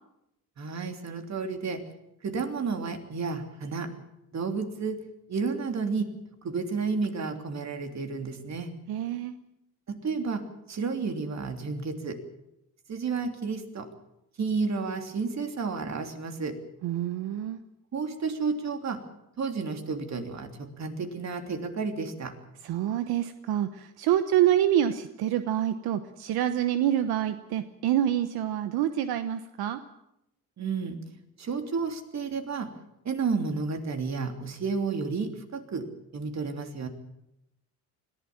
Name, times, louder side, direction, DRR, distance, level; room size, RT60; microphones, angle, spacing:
voice 1, 0.6-1.8 2.2-3.9 4.3-5.0 5.3-6.1 6.4-8.7 9.9-12.2 12.9-13.9 14.4-16.6 17.9-19.0 19.4-22.3 30.6-31.0 31.4-32.7 33.0-35.9 36.1-36.9, right 4 dB, 45° right, 6 dB, 3.2 m, -31 dB
voice 2, 8.9-9.3 16.8-17.6 22.6-29.8, right 11 dB, 80° right, 10 dB, 1.1 m, -27 dB
21.5 x 15.5 x 8.7 m, 0.85 s
cardioid pair, 90°, 37 cm